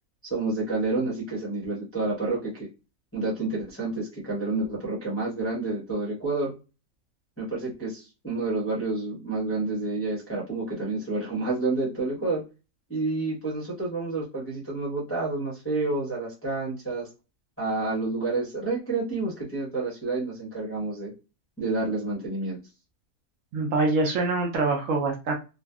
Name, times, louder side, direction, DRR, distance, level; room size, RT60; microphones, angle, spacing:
voice 1, 0.2-2.7 3.1-6.5 7.4-12.4 12.9-17.1 17.6-21.1 21.6-22.6, right 3 dB, 15° left, -6 dB, 0.5 m, -29 dB
voice 2, 23.5-25.4, right 3 dB, 65° right, 1 dB, 0.8 m, -24 dB
2.6 x 2.3 x 2.2 m, 0.30 s
omnidirectional pair, 1.6 m